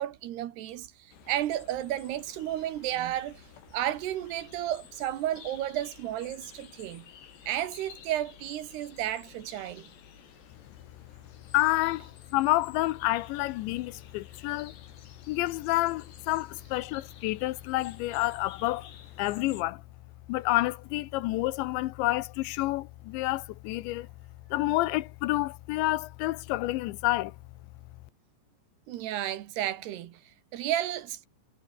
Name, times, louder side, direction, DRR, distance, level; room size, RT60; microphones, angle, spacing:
voice 1, 0.0-3.4 3.7-7.1 7.5-9.9 28.9-31.3, right 12 dB, 70° right, 3.3 m, -32 dB
sound 1, 1.1-19.6, left 8 dB, 70° left, 5.5 m, -52 dB
voice 2, 11.5-14.7 15.3-18.9 19.2-19.8 20.3-24.1 24.5-27.3, left 18 dB, 85° left, 3.1 m, -29 dB
omnidirectional pair, 5.2 m